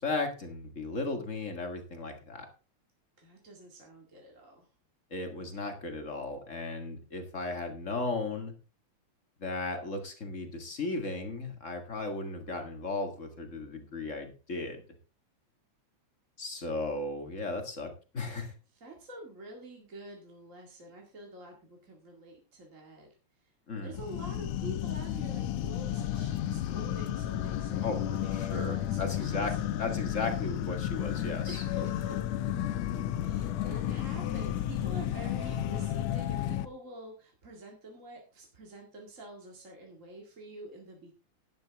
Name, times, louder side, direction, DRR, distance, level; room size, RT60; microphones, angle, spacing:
voice 1, 0.0-2.5 5.1-8.5 9.4-14.8 16.4-18.5 23.7-24.0 27.8-29.5 29.8-31.6, left 3 dB, 30° left, 5 dB, 1.6 m, -36 dB
voice 2, 3.2-4.7 18.7-23.1 23.4-23.5 23.8-29.7 31.5-32.2 33.2-41.1, right 1 dB, 30° right, 0 dB, 2.1 m, -47 dB
sound 1, 23.9-36.7, left 11 dB, 75° left, 1.9 m, -32 dB
12.0 x 10.5 x 3.5 m, 0.34 s
omnidirectional pair, 3.4 m